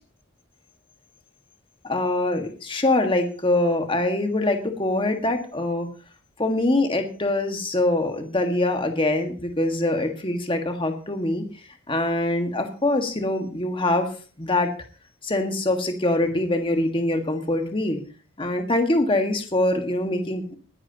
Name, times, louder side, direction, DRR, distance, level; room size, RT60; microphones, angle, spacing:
voice 1, 1.8-5.9 6.4-11.4 11.9-14.7 15.2-18.0 18.4-20.6, left 2 dB, 25° left, 5 dB, 1.6 m, -24 dB
20.5 x 11.0 x 2.9 m, 0.38 s
head